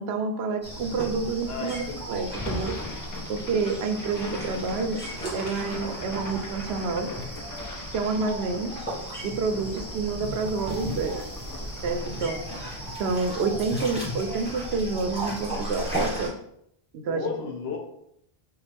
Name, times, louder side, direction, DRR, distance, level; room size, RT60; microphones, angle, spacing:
voice 1, 0.0-2.7 3.3-5.0 5.3-7.1 7.9-8.7 9.2-11.2 11.8-12.4 13.0-16.3 16.9-17.3, right 4 dB, 85° right, 7 dB, 0.8 m, -28 dB
sound 1, 0.6-16.3, equal, 5° right, 1.5 m, -35 dB
voice 2, 1.5-2.3 3.3-3.9 17.0-17.8, left 6 dB, 75° left, 2 dB, 1.0 m, -35 dB
sound 2, 2.3-14.5, left 2 dB, 30° left, 0.3 m, -40 dB
5.6 x 2.3 x 3.4 m, 0.74 s
omnidirectional pair, 1.0 m